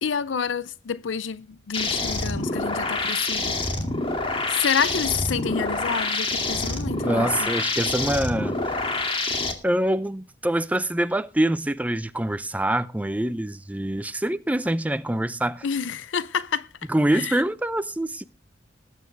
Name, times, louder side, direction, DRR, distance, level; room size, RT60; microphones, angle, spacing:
voice 1, 0.0-3.6 4.5-7.5 15.6-16.7 17.1-17.4, left 7 dB, 90° left, 0.5 m, -28 dB
sound 1, 1.7-9.5, left 2 dB, 30° left, 2.2 m, -27 dB
voice 2, 7.0-8.6 9.6-15.7 16.9-18.2, right 1 dB, 10° right, 0.6 m, -25 dB
20.0 x 9.4 x 3.3 m
head